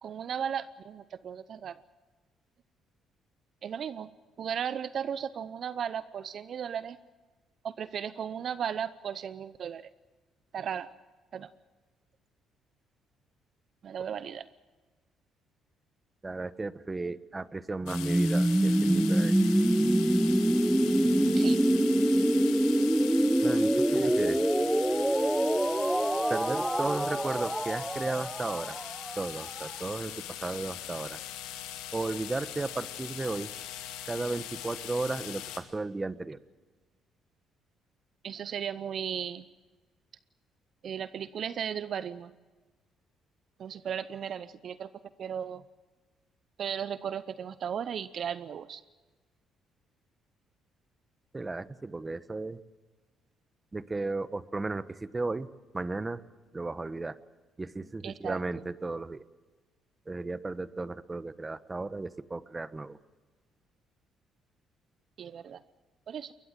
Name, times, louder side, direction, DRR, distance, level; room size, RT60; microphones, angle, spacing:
voice 1, 0.0-1.8 3.6-4.1 4.4-7.0 7.6-9.9 10.5-10.9 11.3-11.5 13.8-14.5 21.2-21.6 23.9-24.1 24.4-24.5 38.2-39.5 40.8-42.3 43.6-44.9 45.2-45.6 46.6-48.8 58.0-58.4 65.2-65.6 66.1-66.3, right 8 dB, 55° right, 15 dB, 0.7 m, -35 dB
voice 2, 16.2-19.3 23.4-24.4 26.3-28.8 29.2-31.2 31.9-33.5 34.0-36.4 51.3-52.6 53.7-55.5 55.7-56.2 56.5-57.2 57.6-59.2 60.1-63.0, right 3 dB, 25° right, 15 dB, 1.1 m, -34 dB
sound 1, 17.9-35.6, left 11 dB, 85° left, 2.2 m, -41 dB
sound 2, 17.9-29.6, right 1 dB, 5° right, 1.0 m, -25 dB
22.0 x 20.5 x 7.5 m, 1.3 s
supercardioid pair, 65°, 0 cm